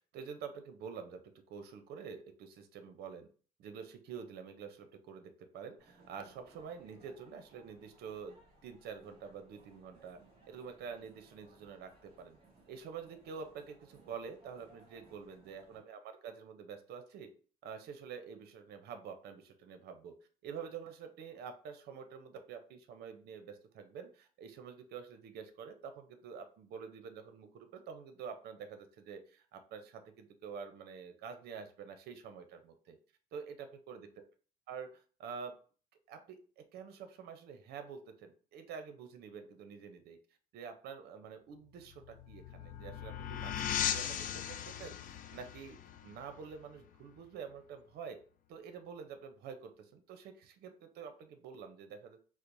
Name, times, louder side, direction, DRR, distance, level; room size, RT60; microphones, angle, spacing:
voice 1, 0.1-1.2 1.5-3.3 3.6-10.2 10.5-12.4 12.7-17.3 17.6-20.1 20.4-33.0 33.3-34.1 34.7-35.6 36.1-40.2 40.5-45.8 46.0-48.2 48.5-52.2, right 6 dB, 70° right, 8 dB, 0.6 m, -47 dB
sound 1, 5.8-15.8, right 2 dB, 35° right, 1.6 m, -63 dB
sound 2, 41.8-47.2, left 9 dB, 50° left, 0.4 m, -39 dB
4.4 x 2.0 x 2.6 m, 0.40 s
cardioid pair, 110°, 17 cm